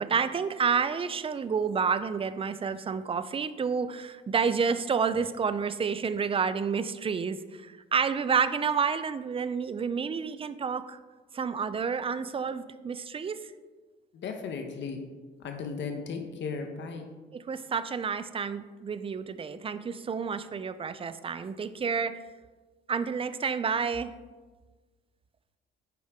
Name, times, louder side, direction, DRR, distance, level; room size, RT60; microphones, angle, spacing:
voice 1, 0.0-11.0 11.3-13.5 17.3-22.2 22.9-24.1, right 6 dB, 30° right, 13 dB, 0.4 m, -29 dB
voice 2, 14.1-15.0 15.4-17.1, left 5 dB, 65° left, 5 dB, 1.0 m, -36 dB
9.3 x 5.1 x 3.6 m, 1.3 s
cardioid pair, 90°, 20 cm